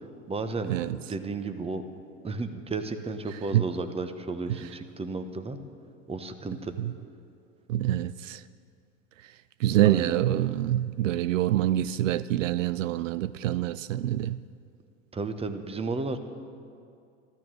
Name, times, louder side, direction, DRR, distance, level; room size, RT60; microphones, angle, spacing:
voice 1, 0.3-1.8 2.2-5.6 6.1-6.7 9.8-10.2 15.1-16.2, right 3 dB, 15° right, 1.1 m, -33 dB
voice 2, 7.7-8.4 9.6-14.4, right 13 dB, 80° right, 0.5 m, -26 dB
14.0 x 13.5 x 6.3 m
hypercardioid pair, 90°, 38 cm